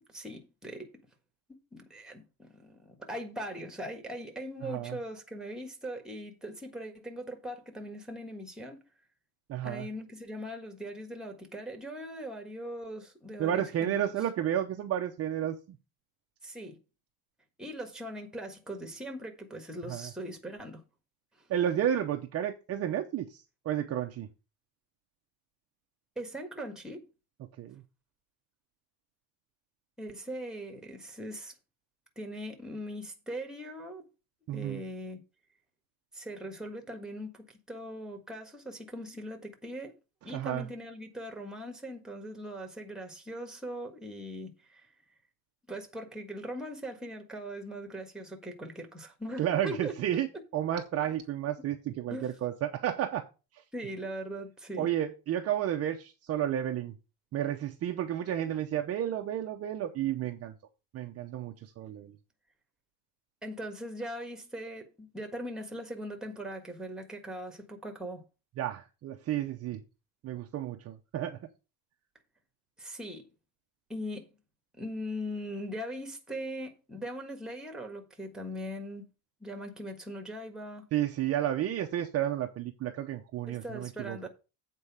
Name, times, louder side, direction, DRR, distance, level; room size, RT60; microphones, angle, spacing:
voice 1, 0.1-0.9 1.7-8.8 9.6-14.1 16.4-16.8 17.6-20.8 26.1-27.1 30.0-31.5 32.2-34.0 34.5-35.2 36.1-39.9 40.2-44.9 45.7-49.9 52.1-52.4 53.7-54.9 63.4-68.2 72.8-73.2 73.9-74.3 74.7-79.1 79.4-80.8 83.5-84.3, equal, ahead, 1.5 m, -40 dB
voice 2, 4.6-5.0 9.5-9.9 13.4-15.8 19.9-20.1 21.5-23.4 23.6-24.3 27.6-27.8 34.5-34.8 40.3-40.7 49.4-50.3 50.5-53.2 54.8-56.9 57.3-60.5 60.9-62.1 68.6-69.8 70.2-71.4 80.9-84.3, right 11 dB, 35° right, 0.7 m, -32 dB
8.2 x 4.5 x 7.1 m
cardioid pair, 150°, 44 cm